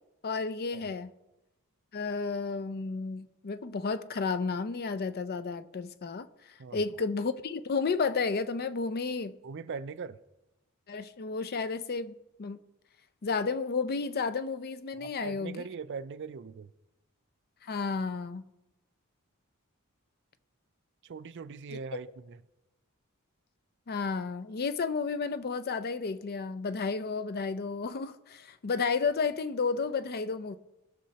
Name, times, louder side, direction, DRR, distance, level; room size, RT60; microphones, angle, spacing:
voice 1, 0.2-1.1 1.9-6.3 6.7-9.3 10.9-12.1 12.4-12.6 13.2-15.6 17.6-18.4 23.9-30.6, left 4 dB, 45° left, 0.5 m, -32 dB
voice 2, 9.4-10.2 15.0-16.7 21.0-22.4, right 5 dB, 55° right, 0.4 m, -41 dB
19.0 x 6.4 x 2.9 m
head